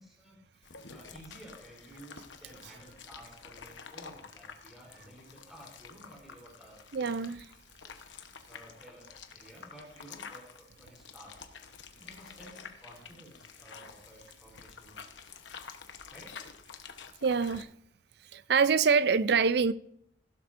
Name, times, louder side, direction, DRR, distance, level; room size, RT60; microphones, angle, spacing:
voice 1, 0.0-7.1 7.8-8.1 8.5-11.4 11.9-15.0 15.3-15.4 16.1-16.4, right 1 dB, ahead, 3.7 m, -53 dB
sound 1, 0.6-17.6, left 6 dB, 80° left, 1.1 m, -49 dB
voice 2, 6.9-7.4 17.2-17.7 18.3-19.7, right 5 dB, 60° right, 0.5 m, -25 dB
16.0 x 11.5 x 2.6 m
head